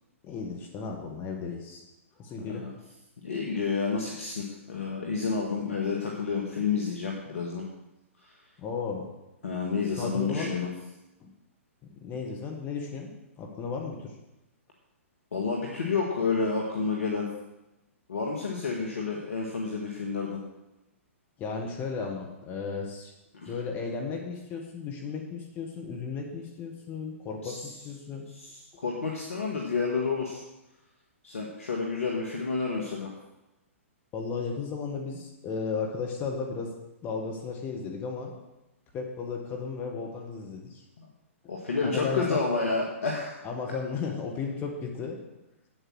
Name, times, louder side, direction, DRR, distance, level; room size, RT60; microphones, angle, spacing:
voice 1, 0.2-1.8 2.2-2.7 8.6-9.1 9.9-10.5 11.2-11.3 12.0-14.1 21.4-23.1 23.5-28.3 34.1-36.7 37.0-38.3 38.9-40.8 41.8-42.5 43.4-45.2, left 5 dB, 25° left, 1 dB, 1.7 m, -34 dB
voice 2, 3.2-7.7 8.2-8.3 9.4-10.7 15.3-17.3 18.1-20.4 23.3-23.5 27.4-27.7 28.3-30.4 31.2-33.1 41.0-41.1 41.5-43.3, left 4 dB, 70° left, -1 dB, 1.9 m, -30 dB
8.9 x 8.2 x 6.4 m, 0.98 s
figure-of-eight pair, 120°, 7 cm